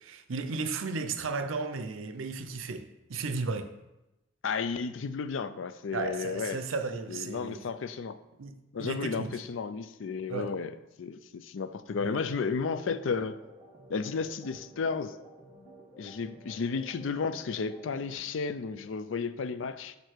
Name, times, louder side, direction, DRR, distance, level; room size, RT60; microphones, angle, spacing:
voice 1, 0.1-3.7 5.9-7.6 8.4-8.5 8.8-9.4 10.3-10.6 12.0-12.2, right 4 dB, 85° right, 0.6 m, -34 dB
voice 2, 4.4-6.6 7.1-8.2 8.7-13.4 13.9-15.2 16.0-20.0, left 5 dB, 70° left, 0.4 m, -33 dB
sound 1, 12.6-18.1, equal, 20° right, 1.6 m, -52 dB
6.6 x 5.3 x 4.5 m
head